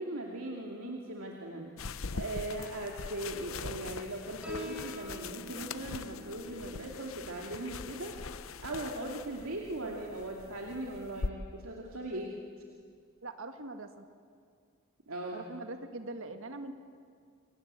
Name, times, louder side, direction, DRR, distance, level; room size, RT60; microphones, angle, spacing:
voice 1, 0.0-1.7 2.1-8.2 8.6-12.3 15.1-15.5, right 1 dB, 90° right, 0 dB, 2.6 m, -39 dB
sound 1, 1.8-11.3, left 4 dB, 70° left, 0.8 m, -42 dB
Piano, 4.4-11.5, equal, 5° right, 6.9 m, -50 dB
voice 2, 13.2-14.1 15.3-16.7, right 2 dB, 70° right, 7 dB, 1.8 m, -42 dB
29.5 x 22.0 x 9.0 m, 2.2 s
head